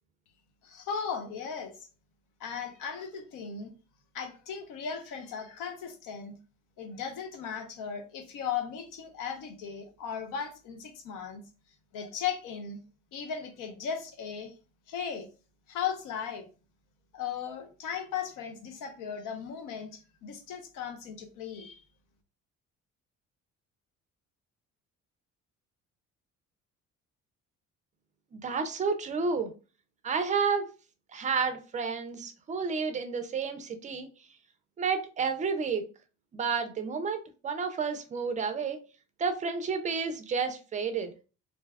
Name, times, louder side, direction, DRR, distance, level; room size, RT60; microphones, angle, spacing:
voice 1, 0.6-1.7 2.4-3.7 4.1-6.4 6.8-11.4 11.9-12.8 13.1-14.5 14.9-15.3 15.7-16.5 17.1-21.8, left 7 dB, 90° left, 6 dB, 0.7 m, -37 dB
voice 2, 28.3-29.5 30.0-30.7 31.1-34.1 34.8-35.9 36.3-38.8 39.2-41.1, right 5 dB, 25° right, 8 dB, 0.3 m, -30 dB
2.6 x 2.2 x 3.3 m, 0.35 s
cardioid pair, 160°, 31 cm